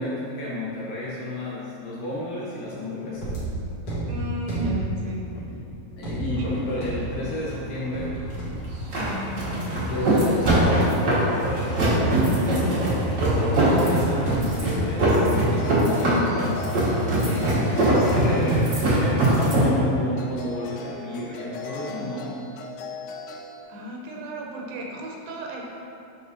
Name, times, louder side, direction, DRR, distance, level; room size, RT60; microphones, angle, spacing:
voice 1, 0.0-3.4 6.0-8.2 9.8-17.3 18.0-22.3, left 1 dB, 70° left, -7 dB, 2.2 m, -31 dB
sound 1, 3.2-11.1 11.8-12.8 14.2-15.5 15.9-16.2, right 1 dB, 50° left, 2.0 m, -33 dB
voice 2, 4.1-5.3 6.4-6.6 9.0-9.4 17.2-18.0 21.8-22.1 23.7-25.6, right 1 dB, 85° right, -1 dB, 2.8 m, -34 dB
sound 2, 6.3-19.7, right 1 dB, 65° right, 1.0 m, -22 dB
sound 3, 15.6-18.9 20.2-23.6, left 3 dB, 85° left, 2.6 m, -38 dB
8.6 x 5.7 x 2.7 m, 2.6 s
omnidirectional pair, 4.6 m